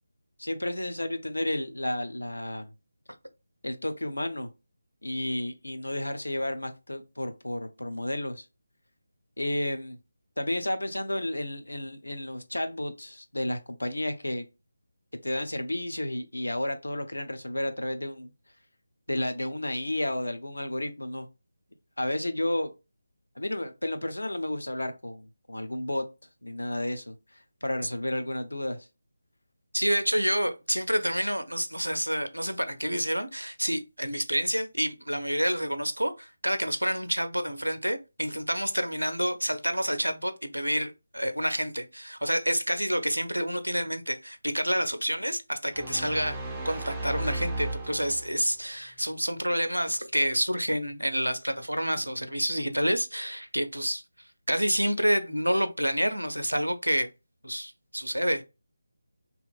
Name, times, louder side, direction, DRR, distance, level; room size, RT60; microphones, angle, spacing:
voice 1, 0.4-2.7 3.6-4.5 5.0-8.4 9.4-10.0 10.4-14.4 15.2-18.3 19.1-21.3 22.0-22.7 23.4-26.0 26.4-27.1 27.6-28.9, left 1 dB, 75° left, 0.5 m, -32 dB
voice 2, 29.7-46.4 46.6-54.0 54.5-57.1 57.4-58.4, equal, 90° right, 0.5 m, -28 dB
sound 1, 45.7-48.5, right 2 dB, 5° right, 0.4 m, -35 dB
2.8 x 2.5 x 2.2 m
figure-of-eight pair, 160°, 0 cm